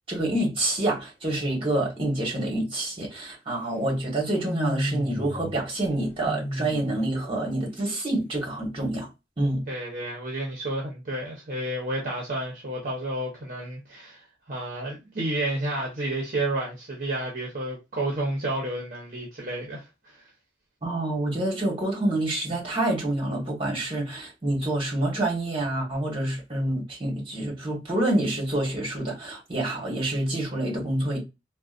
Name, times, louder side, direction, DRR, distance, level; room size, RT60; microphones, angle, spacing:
voice 1, 0.1-9.1 9.4-9.7 20.8-31.2, right 1 dB, 30° right, 1.3 m, -27 dB
sound 1, 4.4-5.6 5.8-6.9, left 1 dB, 10° left, 0.7 m, -32 dB
voice 2, 9.7-20.2, right 1 dB, 50° right, 0.8 m, -31 dB
3.8 x 2.2 x 2.5 m
head